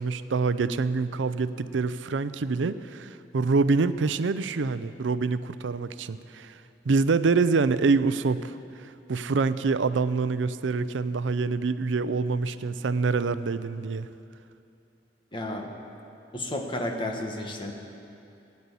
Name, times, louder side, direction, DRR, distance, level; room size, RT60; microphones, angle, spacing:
voice 1, 0.0-6.6 6.9-14.1, right 4 dB, 90° right, 13 dB, 0.5 m, -26 dB
voice 2, 15.3-15.7 16.3-17.7, left 1 dB, 30° left, 2 dB, 1.5 m, -32 dB
17.0 x 9.6 x 8.3 m, 2.7 s
head